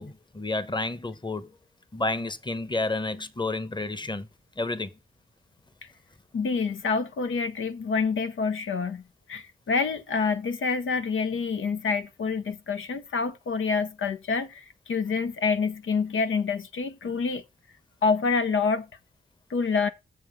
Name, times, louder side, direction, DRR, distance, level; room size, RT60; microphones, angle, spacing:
voice 1, 0.0-1.5 1.9-4.3 4.6-4.9, left 2 dB, 20° left, 1.0 m, -30 dB
voice 2, 6.3-9.0 9.3-17.4 18.0-18.9 19.5-19.9, left 5 dB, 80° left, 0.7 m, -27 dB
7.0 x 5.6 x 5.2 m
cardioid pair, 55°, 20 cm